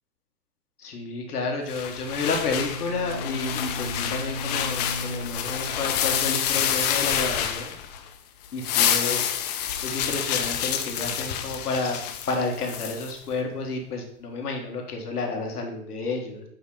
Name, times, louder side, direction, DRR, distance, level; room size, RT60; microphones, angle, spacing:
voice 1, 0.8-7.7 8.5-9.2 9.8-12.0 12.3-16.4, left 3 dB, 75° left, 2 dB, 1.8 m, -30 dB
sound 1, 1.7-8.1 8.4-13.1, left 9 dB, 25° left, 0.5 m, -28 dB
Bowed string instrument, 2.4-7.1, left 1 dB, 10° left, 1.2 m, -36 dB
8.4 x 2.9 x 4.9 m, 0.70 s
hypercardioid pair, 120°, 47 cm